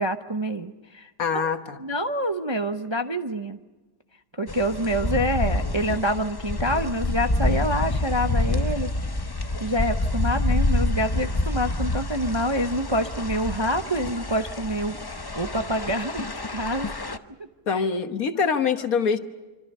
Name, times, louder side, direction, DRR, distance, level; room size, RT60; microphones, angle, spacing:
voice 1, 0.0-1.5 1.8-3.6 4.3-8.9 9.6-14.9 15.3-16.9 17.7-17.8, equal, 25° right, 6 dB, 0.6 m, -27 dB
voice 2, 1.2-1.8 16.9-17.0 17.7-19.2, left 5 dB, 60° left, 8 dB, 1.7 m, -24 dB
sound 1, 4.5-17.2, left 2 dB, 25° left, 0.6 m, -27 dB
26.5 x 25.5 x 5.5 m, 1.2 s
omnidirectional pair, 1.7 m